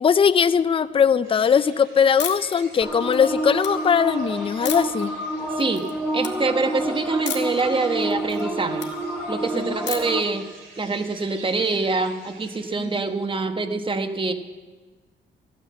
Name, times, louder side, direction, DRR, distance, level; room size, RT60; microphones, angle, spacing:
voice 1, 0.0-5.1 9.5-9.8, left 7 dB, 25° left, 15 dB, 0.5 m, -20 dB
sound 1, 1.2-13.0, right 3 dB, 85° right, 4.6 m, -47 dB
sound 2, 2.2-2.6 3.0-3.7 4.7-5.1 5.5-5.9 6.2-6.3 7.3-7.6 8.0-8.9 9.9-10.2, left 9 dB, 65° left, 1.7 m, -32 dB
sound 3, 2.8-10.2, right 1 dB, 5° right, 2.0 m, -29 dB
voice 2, 5.6-8.9 9.3-10.5 10.8-14.3, right 3 dB, 25° right, 8 dB, 1.2 m, -25 dB
14.5 x 9.4 x 7.6 m, 1.4 s
cardioid pair, 90°, 20 cm